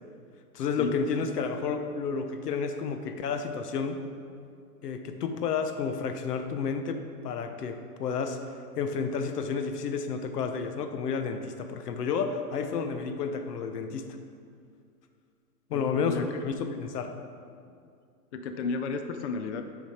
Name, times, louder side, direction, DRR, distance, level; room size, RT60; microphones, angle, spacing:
voice 1, 0.5-4.0 4.8-8.4 8.8-14.1 15.7-17.1, left 5 dB, 90° left, 7 dB, 0.8 m, -31 dB
voice 2, 15.7-16.4 18.3-19.6, left 4 dB, 50° left, 8 dB, 0.5 m, -33 dB
6.6 x 5.0 x 4.2 m, 2.3 s
hypercardioid pair, 150°, 46 cm